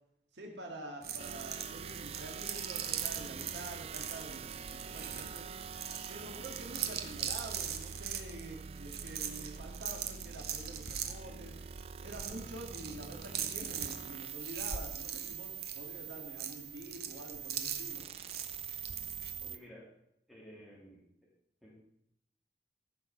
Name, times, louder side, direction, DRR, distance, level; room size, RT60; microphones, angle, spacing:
voice 1, 0.3-5.5 6.1-11.6 12.0-18.1, right 1 dB, 85° right, 1 dB, 1.9 m, -47 dB
sound 1, 1.0-19.3, right 8 dB, 60° right, 1.0 m, -41 dB
sound 2, 1.2-19.6, right 7 dB, 35° right, 0.3 m, -45 dB
voice 2, 19.4-19.9 20.3-21.3 21.6-21.7, equal, ahead, -5 dB, 2.8 m, -54 dB
14.0 x 6.4 x 5.2 m, 0.75 s
head